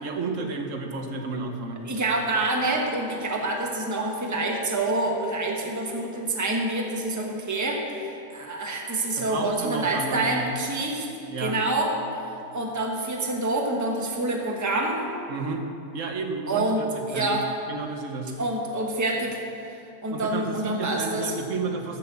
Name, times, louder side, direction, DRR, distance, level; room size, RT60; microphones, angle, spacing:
voice 1, 0.0-1.9 9.2-10.5 11.3-11.6 15.3-15.6 15.9-17.4 17.7-18.3 20.1-22.0, right 4 dB, 55° right, 4 dB, 1.3 m, -32 dB
voice 2, 1.8-11.1 11.4-11.9 12.5-15.0 16.5-17.4 18.4-19.4 20.0-21.3, right 2 dB, 10° right, 0 dB, 1.2 m, -27 dB
14.0 x 6.2 x 6.9 m, 2.7 s
omnidirectional pair, 1.8 m